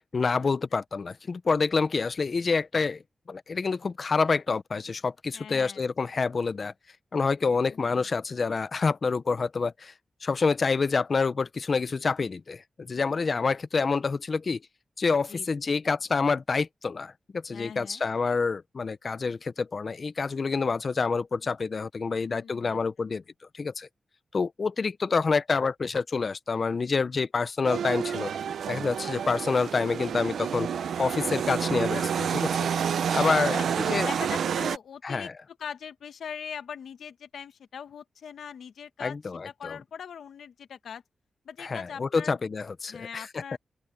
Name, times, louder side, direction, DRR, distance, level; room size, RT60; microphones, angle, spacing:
voice 1, 0.1-3.0 3.3-6.7 7.1-9.9 10.2-14.6 15.0-23.2 23.5-23.9 24.3-28.3 28.7-30.7 31.0-32.7 33.1-34.1 35.0-35.3 39.0-39.8 41.6-43.3, left 4 dB, 45° left, 0.8 m, -27 dB
voice 2, 5.3-5.8 7.5-8.1 15.3-15.5 17.5-18.0 22.2-22.8 32.9-33.0 33.3-33.7 34.0-39.2 39.4-41.0 41.4-42.4 42.9-43.6, left 7 dB, 85° left, 1.4 m, -41 dB
sound 1, 27.6-34.8, right 7 dB, 85° right, 0.7 m, -29 dB
open air
wide cardioid pair, 95°, 0 cm